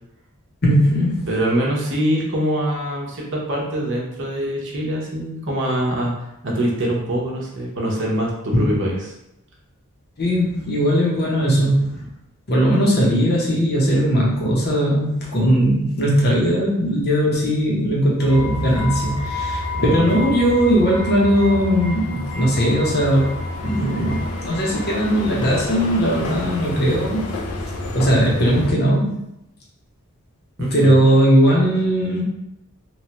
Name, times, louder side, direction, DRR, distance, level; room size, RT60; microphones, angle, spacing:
voice 1, 0.6-1.3 8.5-8.8 10.2-12.1 12.5-23.3 23.6-27.2 27.9-29.1 30.6-32.2, equal, 45° left, -4 dB, 0.8 m, -18 dB
voice 2, 1.3-6.1 6.4-9.1 19.8-20.1 30.6-31.1, right 1 dB, 55° right, -2 dB, 0.8 m, -24 dB
sound 1, 18.2-28.7, left 2 dB, 85° left, 0.5 m, -28 dB
3.0 x 2.3 x 2.9 m, 0.84 s
head